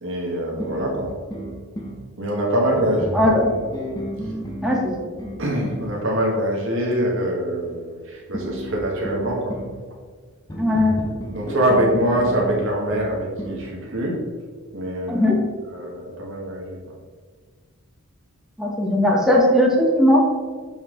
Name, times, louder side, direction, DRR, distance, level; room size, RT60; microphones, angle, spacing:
voice 1, 0.0-1.1 2.2-3.2 5.4-9.5 11.3-14.2 14.7-15.3 15.7-16.8, right 1 dB, 60° right, -2 dB, 1.5 m, -24 dB
sound 1, 0.6-2.0 2.7-5.9 8.3-9.8 10.5-13.7, equal, 15° left, 1.0 m, -32 dB
voice 2, 3.1-3.5 4.6-4.9 10.6-11.1 15.1-15.4 18.6-20.3, left 1 dB, 5° right, -2 dB, 1.2 m, -18 dB
7.0 x 5.6 x 3.8 m, 1.6 s
head